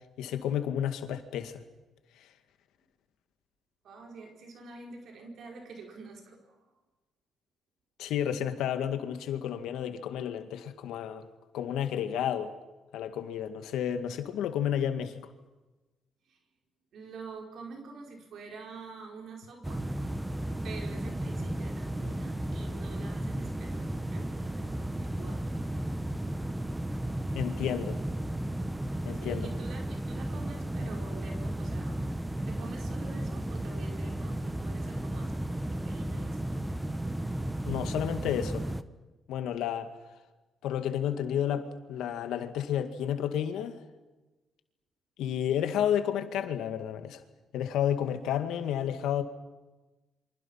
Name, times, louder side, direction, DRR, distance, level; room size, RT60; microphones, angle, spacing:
voice 1, 0.2-1.6 8.0-11.2 11.5-12.5 12.9-15.3 27.3-28.0 29.1-29.5 37.7-38.7 39.3-39.9 40.6-43.8 45.2-47.2 47.5-49.2, left 9 dB, 85° left, 2.0 m, -31 dB
voice 2, 3.8-6.6 16.3-16.4 16.9-19.9 20.6-25.5 29.2-32.0 32.5-36.6 45.5-45.8, right 4 dB, 70° right, 5.2 m, -47 dB
sound 1, 19.6-38.8, right 1 dB, 10° right, 1.2 m, -34 dB
28.5 x 25.5 x 5.8 m
cardioid pair, 90°, 0 cm